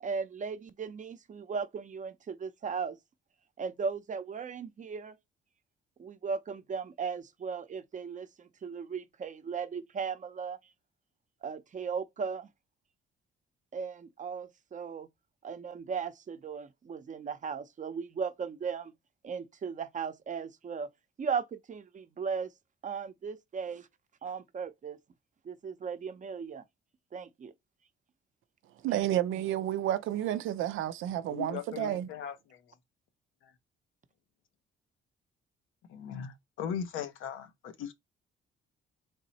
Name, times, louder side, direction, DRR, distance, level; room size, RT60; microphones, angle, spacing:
voice 1, 0.0-3.0 3.6-5.1 6.0-10.6 11.4-12.5 13.7-15.1 15.4-18.9 19.2-20.9 21.2-22.5 22.8-23.9 24.2-25.0 25.4-26.6 27.1-27.5, right 6 dB, 40° right, 0.7 m, -37 dB
voice 2, 28.8-32.1, right 12 dB, 80° right, 0.5 m, -31 dB
voice 3, 31.3-32.6 35.9-37.9, left 8 dB, 85° left, 0.8 m, -39 dB
3.6 x 3.0 x 4.1 m
cardioid pair, 90°, 20 cm